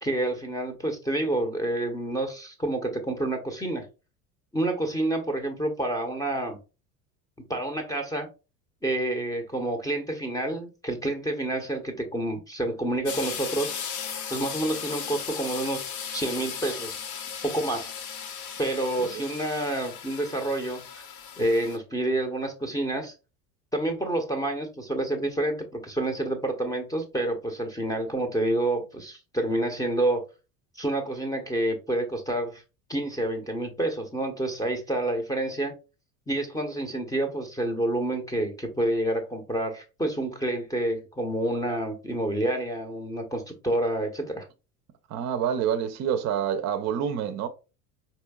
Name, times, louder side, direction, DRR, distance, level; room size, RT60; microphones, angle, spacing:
voice 1, 0.0-3.9 4.5-6.6 7.5-8.3 8.8-13.7 14.3-16.9 17.4-17.9 18.6-21.0 21.4-23.1 23.7-30.2 30.8-32.6 32.9-35.7 36.3-44.5, right 1 dB, 10° left, 0.8 m, -28 dB
sound 1, 13.1-21.8, left 7 dB, 40° left, 0.7 m, -36 dB
voice 2, 45.1-47.5, right 8 dB, 35° right, 0.6 m, -27 dB
4.4 x 2.8 x 2.2 m
hypercardioid pair, 75°, 47 cm